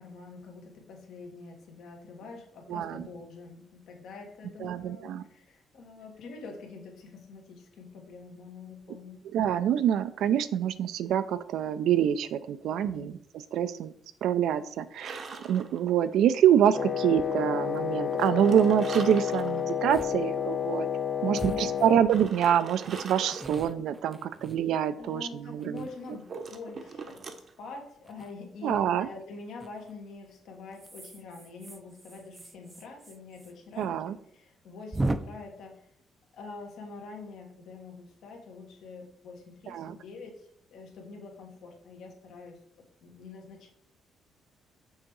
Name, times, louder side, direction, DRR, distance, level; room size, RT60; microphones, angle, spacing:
voice 1, 0.0-9.2 12.7-13.1 21.2-21.9 24.9-35.9 36.3-42.6 43.0-43.7, left 4 dB, 75° left, 2 dB, 1.5 m, -45 dB
voice 2, 2.7-3.1 4.6-5.2 9.3-13.2 13.5-13.9 14.2-20.9 21.2-25.8 28.6-29.1 33.8-34.1 39.7-40.0, right 9 dB, 80° right, 13 dB, 0.4 m, -26 dB
sound 1, 15.0-16.1 18.2-19.7 20.3-20.4 22.1-23.7 25.8-27.5, right 4 dB, 50° right, 0.8 m, -42 dB
Wind instrument woodwind instrument, 16.7-22.1, left 8 dB, 40° left, 0.4 m, -30 dB
sound 2, 17.2-17.3 17.7-17.8 18.1-18.4 19.3-19.5 19.9-20.1 20.5-20.6 21.4-22.3 22.8-25.1 25.6-26.4 28.0-28.3 29.6-29.9 30.7-33.5 33.8-33.9 34.2-34.3 34.9-35.2, right 2 dB, 20° right, 0.4 m, -38 dB
6.3 x 3.6 x 4.7 m, 0.66 s
cardioid pair, 90°, 0 cm